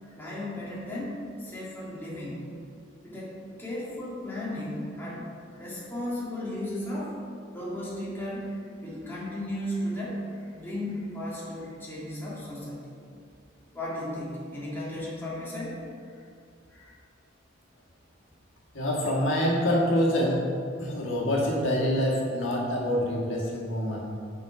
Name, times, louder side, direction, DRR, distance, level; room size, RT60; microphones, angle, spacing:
voice 1, 0.0-2.5 3.0-7.2 7.5-12.9 13.7-15.8 16.1-16.3 16.7-16.9, left 1 dB, 10° left, -7 dB, 1.8 m, -35 dB
voice 2, 18.7-20.4 20.8-24.0, equal, 80° left, -4 dB, 1.6 m, -26 dB
7.4 x 5.3 x 4.9 m, 2.3 s
head